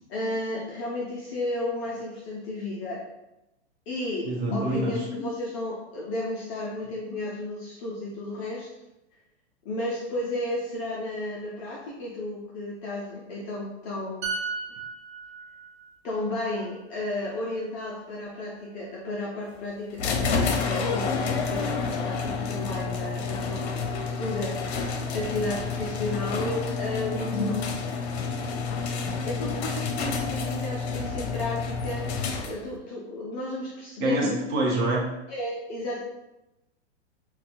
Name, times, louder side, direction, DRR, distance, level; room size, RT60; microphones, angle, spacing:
voice 1, 0.1-3.0 3.9-8.7 9.6-14.3 16.0-27.8 29.2-34.4 35.3-36.0, left 2 dB, 25° left, -4 dB, 0.3 m, -33 dB
voice 2, 4.2-5.0 27.2-27.3 34.0-35.0, right 2 dB, 35° right, -1 dB, 0.8 m, -26 dB
sound 1, 14.2-17.8 18.1-18.4, right 4 dB, 65° right, 0.9 m, -37 dB
sound 2, 20.0-32.8, left 4 dB, 65° left, 0.6 m, -29 dB
4.0 x 2.2 x 2.5 m, 0.94 s
hypercardioid pair, 125°, 35 cm